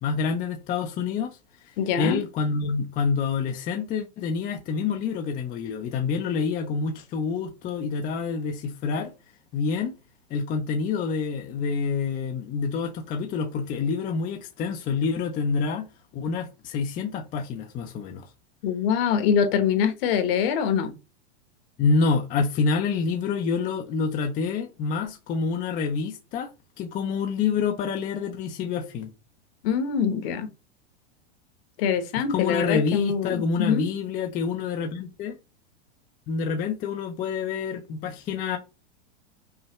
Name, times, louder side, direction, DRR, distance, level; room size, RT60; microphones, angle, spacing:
voice 1, 0.0-1.4 2.0-9.1 9.5-9.9 10.3-15.9 16.1-18.3 21.8-29.1 32.3-35.4 36.3-38.6, left 5 dB, 25° left, 0.5 m, -27 dB
voice 2, 1.8-2.2 18.6-20.9 29.6-30.5 31.8-33.8, left 7 dB, 60° left, 1.2 m, -24 dB
5.6 x 2.1 x 3.0 m
supercardioid pair, 135°, 34 cm